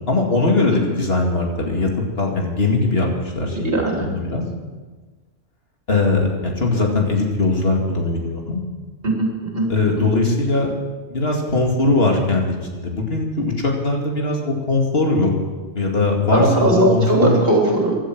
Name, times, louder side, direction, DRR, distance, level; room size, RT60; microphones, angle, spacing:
voice 1, 0.1-1.9 2.2-3.7 4.0-4.4 5.9-8.6 9.7-15.3 15.7-17.3, left 3 dB, 55° left, 0 dB, 2.6 m, -20 dB
voice 2, 3.7-4.1 9.0-9.7 10.0-10.1 16.3-18.0, right 2 dB, 50° right, -1 dB, 3.7 m, -18 dB
16.5 x 11.5 x 6.1 m, 1.3 s
omnidirectional pair, 1.2 m